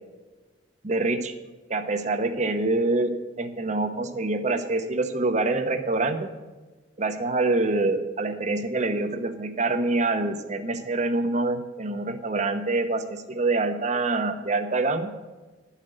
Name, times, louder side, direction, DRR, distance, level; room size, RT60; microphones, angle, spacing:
voice 1, 0.8-1.3 1.7-6.3 7.0-15.1, right 2 dB, 40° right, 8 dB, 0.9 m, -26 dB
11.5 x 5.8 x 7.8 m, 1.3 s
head